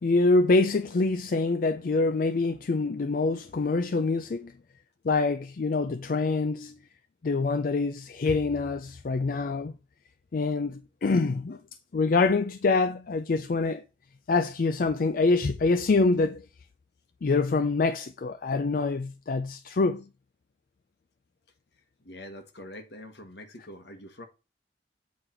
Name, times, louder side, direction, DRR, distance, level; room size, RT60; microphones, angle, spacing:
voice 1, 0.0-4.5 5.0-6.7 7.2-9.7 10.3-11.6 11.9-13.8 14.3-16.4 17.2-20.0, left 3 dB, 50° left, 0.4 m, -25 dB
voice 2, 22.0-24.3, left 1 dB, 70° left, 1.4 m, -44 dB
8.3 x 3.9 x 4.4 m
head